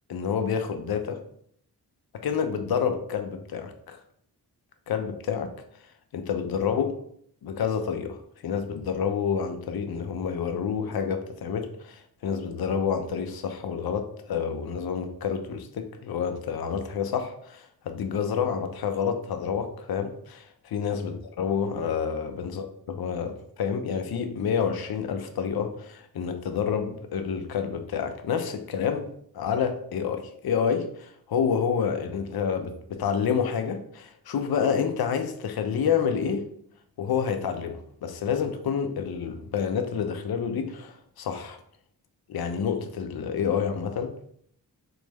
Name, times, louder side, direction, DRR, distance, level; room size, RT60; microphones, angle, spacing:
voice 1, 0.1-1.2 2.1-4.0 4.9-5.5 6.1-6.9 7.4-8.2 8.4-29.1 29.3-36.5 37.0-41.6 42.3-44.1, left 7 dB, 65° left, 0.6 m, -28 dB
4.0 x 2.1 x 3.3 m
cardioid pair, 55°, 39 cm